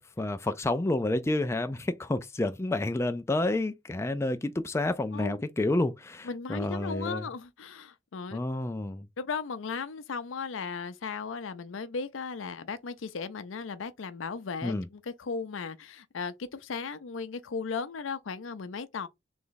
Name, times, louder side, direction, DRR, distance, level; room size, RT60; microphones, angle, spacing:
voice 1, 0.0-7.3 8.3-9.1 14.6-14.9, left 2 dB, 15° left, 0.3 m, -29 dB
voice 2, 6.2-8.4 9.2-19.1, left 5 dB, 80° left, 0.5 m, -36 dB
3.4 x 3.1 x 3.9 m
head